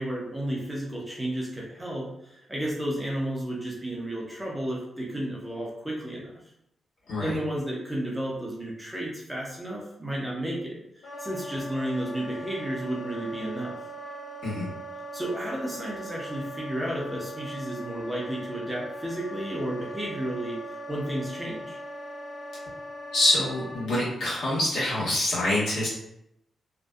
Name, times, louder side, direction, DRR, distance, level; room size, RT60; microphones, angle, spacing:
voice 1, 0.0-6.3 7.2-13.7 15.1-21.8, right 1 dB, 5° right, -4 dB, 0.5 m, -32 dB
voice 2, 7.1-7.4 14.4-14.7 23.1-25.9, left 1 dB, 85° left, -8 dB, 1.2 m, -25 dB
Wind instrument woodwind instrument, 11.0-23.9, right 1 dB, 50° left, 0.8 m, -40 dB
2.5 x 2.1 x 2.3 m, 0.79 s
wide cardioid pair, 165°, 0 cm